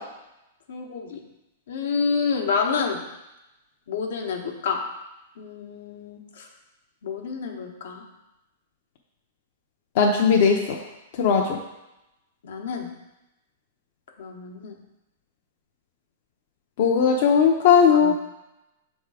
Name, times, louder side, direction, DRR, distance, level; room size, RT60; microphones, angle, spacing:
voice 1, 0.7-1.2 1.7-3.0 3.9-4.8 5.4-6.5 7.0-8.0 12.4-12.9 14.2-14.7 17.9-18.1, left 5 dB, 75° left, 2 dB, 1.1 m, -28 dB
voice 2, 10.0-10.6 11.2-11.6 16.8-18.1, left 6 dB, 50° left, 0 dB, 0.6 m, -18 dB
6.6 x 3.6 x 4.8 m, 0.95 s
hypercardioid pair, 155°, 0 cm